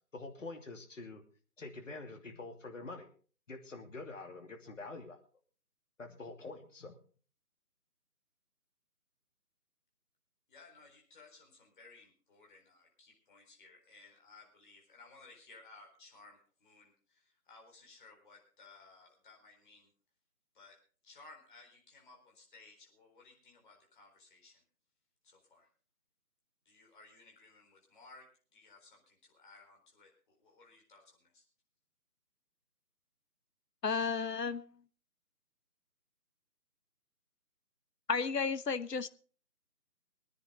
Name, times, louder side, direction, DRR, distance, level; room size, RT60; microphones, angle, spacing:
voice 1, 0.1-1.2 1.6-3.1 3.5-5.2 6.0-7.0, left 3 dB, 50° left, 4 dB, 2.8 m, -46 dB
voice 2, 10.5-19.9 20.5-20.8 21.0-24.6 25.2-25.7 26.7-28.2 28.5-31.4, left 3 dB, 30° left, 0 dB, 4.3 m, -59 dB
voice 3, 33.8-34.7 38.1-39.1, left 5 dB, 85° left, 15 dB, 1.0 m, -33 dB
23.5 x 9.9 x 3.8 m, 0.41 s
figure-of-eight pair, 160°, 47 cm